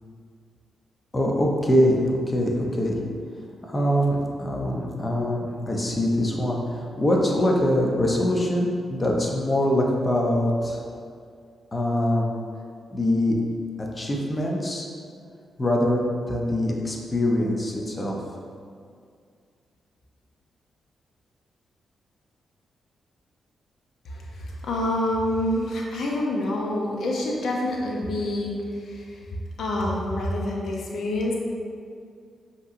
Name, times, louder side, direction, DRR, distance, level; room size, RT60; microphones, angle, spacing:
voice 1, 1.1-3.0 3.6-10.8 11.7-12.3 12.9-13.4 13.8-14.9 15.6-18.2, left 1 dB, 30° left, -1 dB, 0.7 m, -23 dB
voice 2, 24.1-28.5 28.8-29.2 29.6-31.3, left 1 dB, 70° left, -2 dB, 0.6 m, -27 dB
5.3 x 3.0 x 2.6 m, 2.2 s
cardioid pair, 70°, 0 cm